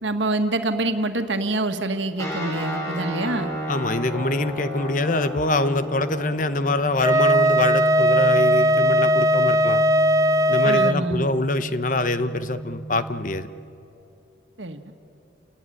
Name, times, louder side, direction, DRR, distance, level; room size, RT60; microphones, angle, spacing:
voice 1, 0.0-3.5 10.6-11.3 14.6-14.8, right 2 dB, 80° right, 7 dB, 1.8 m, -26 dB
sound 1, 2.2-13.4, right 1 dB, 15° left, 6.1 m, -32 dB
voice 2, 3.7-9.8 10.5-13.5, left 2 dB, 45° left, 12 dB, 1.0 m, -24 dB
Wind instrument woodwind instrument, 7.0-11.0, right 1 dB, 20° right, 0.5 m, -18 dB
30.0 x 18.5 x 10.0 m, 2.8 s
head